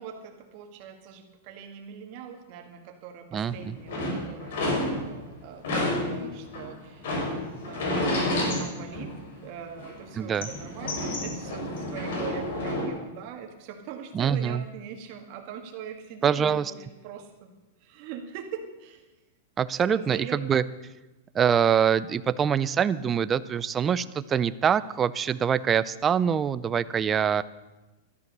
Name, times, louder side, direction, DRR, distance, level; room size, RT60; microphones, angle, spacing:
voice 1, 0.0-4.6 4.9-7.3 7.6-9.1 9.4-17.5 17.8-19.0 19.9-20.4, right 8 dB, 35° right, 3 dB, 2.0 m, -42 dB
voice 2, 3.3-3.8 10.2-10.5 14.1-14.6 16.2-16.7 19.6-20.6 21.3-27.4, right 8 dB, 15° right, 15 dB, 0.4 m, -24 dB
sound 1, 3.5-5.3 5.6-9.5 9.8-12.9, left 1 dB, 60° left, 4.8 m, -30 dB
13.0 x 12.5 x 6.7 m, 1.1 s
supercardioid pair, 170°, 0 cm